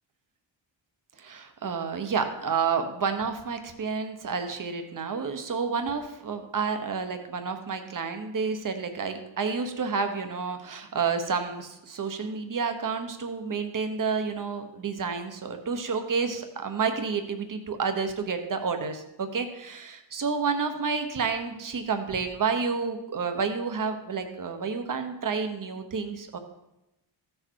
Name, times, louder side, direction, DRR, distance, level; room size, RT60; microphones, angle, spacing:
voice 1, 1.2-26.4, right 5 dB, 45° right, 6 dB, 1.1 m, -30 dB
15.0 x 6.6 x 4.7 m, 0.91 s
wide cardioid pair, 180°, 46 cm